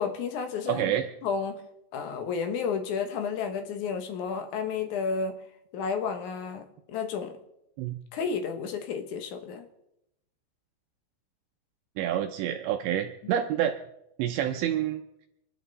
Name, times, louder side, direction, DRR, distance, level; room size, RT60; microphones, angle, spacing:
voice 1, 0.0-0.8 1.2-1.6 1.9-5.4 5.7-7.3 8.1-9.6, left 5 dB, 70° left, 1.8 m, -31 dB
voice 2, 0.7-1.1 7.8-7.9 12.0-13.8 14.2-15.0, right 10 dB, 80° right, 2.8 m, -28 dB
27.0 x 11.0 x 4.1 m
omnidirectional pair, 5.3 m